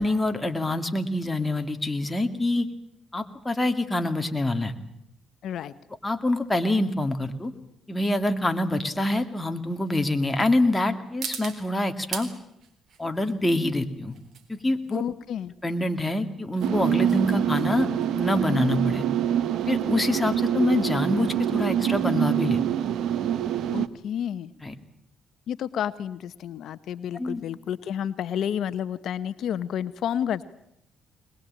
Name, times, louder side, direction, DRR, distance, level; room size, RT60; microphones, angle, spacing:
voice 1, 0.0-2.7 3.1-4.8 6.0-7.5 7.9-12.3 13.0-14.1 14.5-15.0 15.6-19.0 19.7-22.9 24.6-24.7 27.1-27.4, left 1 dB, 15° left, 6 dB, 2.4 m, -25 dB
voice 2, 5.4-5.7 14.9-15.5 23.7-24.5 25.5-30.4, left 9 dB, 70° left, 13 dB, 0.9 m, -30 dB
sound 1, 5.6-22.3, right 6 dB, 60° right, 3.9 m, -44 dB
sound 2, 16.6-23.9, right 10 dB, 75° right, 1.2 m, -25 dB
22.0 x 21.0 x 8.8 m, 0.77 s
cardioid pair, 90°, 0 cm